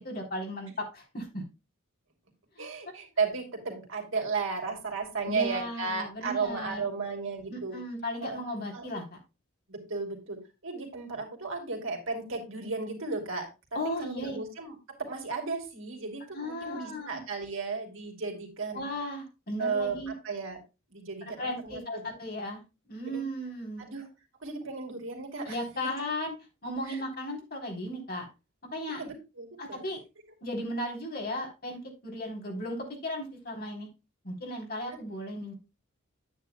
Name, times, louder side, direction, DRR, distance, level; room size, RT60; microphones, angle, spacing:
voice 1, 0.0-1.4 2.6-2.7 5.3-6.9 7.5-9.0 13.7-14.4 16.3-17.2 18.7-20.1 21.4-22.6 22.9-23.8 25.5-26.3 26.6-28.3 28.7-29.0 29.6-30.0 30.4-33.9 34.2-35.5, left 1 dB, 45° left, 1 dB, 3.6 m, -36 dB
voice 2, 2.6-7.8 8.2-8.4 8.7-8.9 9.7-18.9 19.6-20.6 20.9-22.0 23.0-23.2 23.8-24.1 24.4-25.6 26.9-27.0 29.0-29.9 34.9-35.0, right 4 dB, 65° right, 2 dB, 2.9 m, -34 dB
9.8 x 9.5 x 2.2 m, 0.27 s
head